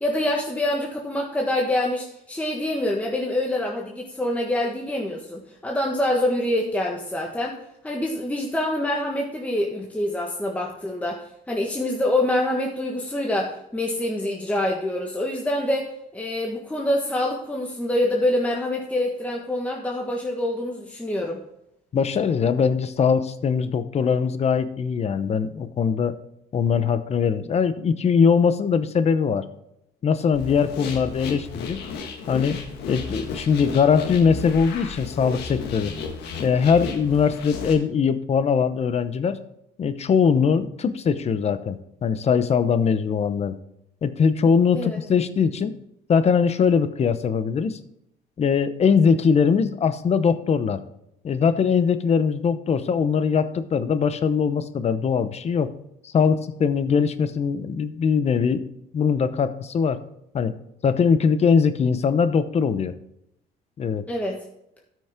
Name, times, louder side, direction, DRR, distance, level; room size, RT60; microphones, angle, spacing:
voice 1, 0.0-7.6 7.8-15.9 16.1-21.4 44.7-45.0 64.1-64.4, left 1 dB, 10° left, -1 dB, 1.4 m, -26 dB
voice 2, 21.9-26.2 26.5-29.5 30.0-31.8 32.3-32.6 32.9-35.9 36.4-39.4 39.8-43.5 44.0-45.7 46.1-47.8 48.4-50.8 51.2-55.7 56.0-58.6 58.9-60.0 60.3-60.5 60.8-62.9 63.8-64.0, left 6 dB, 40° left, 12 dB, 0.9 m, -21 dB
sound 1, 30.3-37.8, left 5 dB, 80° left, 1.7 m, -34 dB
13.5 x 6.2 x 3.7 m, 0.79 s
cardioid pair, 110°, 17 cm